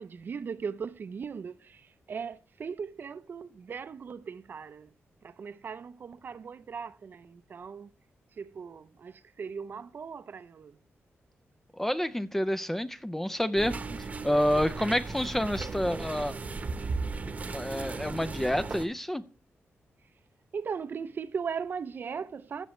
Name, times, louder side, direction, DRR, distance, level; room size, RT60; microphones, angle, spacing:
voice 1, 0.0-4.9 5.2-7.9 8.3-10.8 20.5-22.7, right 6 dB, 50° right, 0.6 m, -38 dB
voice 2, 11.7-16.4 17.5-19.2, equal, 5° left, 0.4 m, -29 dB
sound 1, 13.6-18.9, right 4 dB, 35° right, 1.0 m, -36 dB
14.5 x 8.1 x 3.1 m
wide cardioid pair, 155°, 4 cm